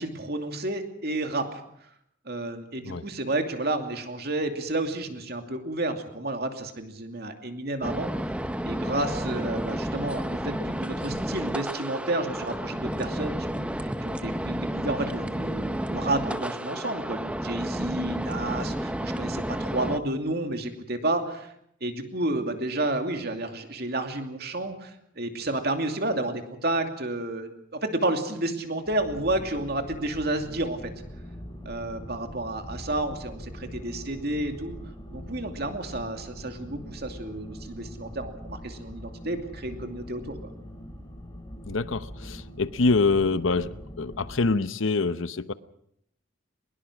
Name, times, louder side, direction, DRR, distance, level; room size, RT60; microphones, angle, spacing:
voice 1, 0.0-1.6 2.2-8.3 8.6-21.5 21.8-30.9 31.6-34.8 35.1-40.4, right 2 dB, 50° right, 5 dB, 2.7 m, -31 dB
sound 1, 7.8-20.0, equal, 5° right, 0.8 m, -31 dB
sound 2, 28.8-44.5, equal, 20° left, 3.0 m, -42 dB
voice 2, 41.7-45.5, left 3 dB, 75° left, 14 dB, 0.8 m, -25 dB
22.5 x 21.5 x 6.3 m, 0.73 s
head